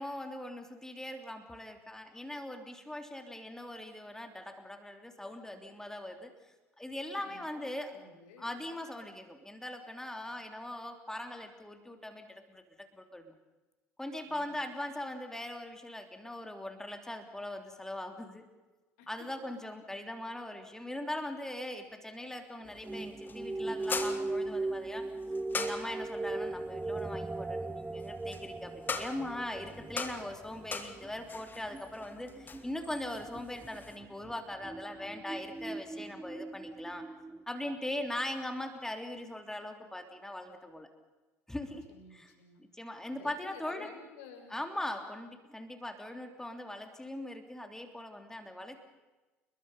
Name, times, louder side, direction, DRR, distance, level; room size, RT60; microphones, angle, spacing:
voice 1, 0.0-6.3 6.8-7.9 8.4-13.2 14.0-18.4 19.1-25.1 25.5-37.0 37.5-40.9 41.5-41.8 42.1-43.9 44.5-48.8, left 1 dB, 5° left, 5 dB, 3.5 m, -40 dB
voice 2, 7.0-8.6 14.2-14.6 19.0-19.1 41.6-42.6 43.1-44.5, left 5 dB, 60° left, 4 dB, 5.8 m, -53 dB
sound 1, 22.6-34.0, left 4 dB, 25° left, 2.7 m, -43 dB
sound 2, 22.8-37.4, right 2 dB, 10° right, 0.8 m, -39 dB
30.0 x 22.0 x 5.6 m, 1.1 s
figure-of-eight pair, 65°, 8 cm